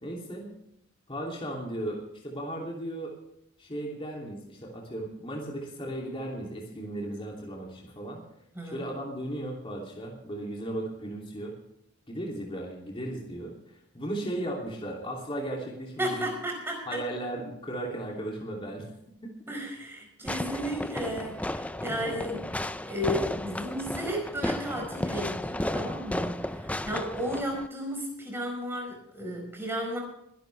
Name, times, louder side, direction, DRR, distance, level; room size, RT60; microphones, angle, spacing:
voice 1, 0.0-0.5 1.1-3.1 3.6-8.2 8.6-11.5 12.1-13.5 13.9-16.3 16.9-18.9 19.2-19.3 21.9-22.2, right 1 dB, 25° left, -1 dB, 2.8 m, -36 dB
voice 2, 16.0-17.0 19.5-30.0, equal, 10° right, 1 dB, 4.7 m, -34 dB
Fireworks, 20.3-27.7, left 1 dB, 5° left, 0.5 m, -33 dB
23.0 x 12.0 x 3.4 m, 0.80 s
head